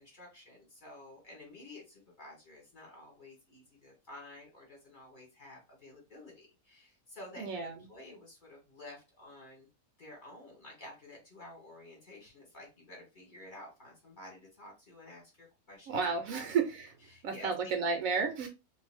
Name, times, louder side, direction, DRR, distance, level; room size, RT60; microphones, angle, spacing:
voice 1, 0.0-9.7 10.0-16.5 17.1-17.7, left 1 dB, 35° left, -1 dB, 1.2 m, -51 dB
voice 2, 7.4-7.8 15.9-16.9 17.2-18.5, right 5 dB, 70° right, 5 dB, 1.0 m, -32 dB
2.6 x 2.1 x 3.3 m, 0.27 s
omnidirectional pair, 1.6 m